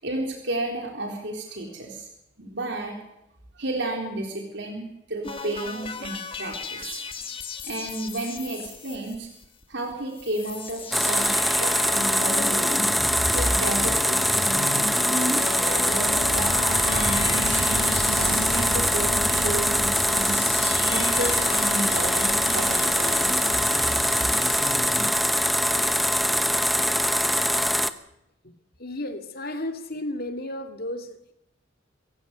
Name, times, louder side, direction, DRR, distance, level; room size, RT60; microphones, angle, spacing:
voice 1, 0.0-2.1 2.4-3.0 3.6-7.0 7.6-9.3 9.7-11.3 11.6-12.7 13.3-16.5 16.9-17.7 18.1-20.4 20.9-23.3, right 2 dB, 65° right, 2 dB, 4.0 m, -32 dB
sound 1, 5.2-9.6 9.9-10.0 10.2-25.1, left 3 dB, 30° left, 1.9 m, -35 dB
sound 2, 10.9-27.9, equal, ahead, 0.9 m, -23 dB
sound 3, 15.6-26.7 27.2-27.3, right 1 dB, 45° right, 2.3 m, -35 dB
voice 2, 28.8-31.3, left 1 dB, 50° left, 7 dB, 2.4 m, -33 dB
23.5 x 15.5 x 8.1 m, 0.84 s
head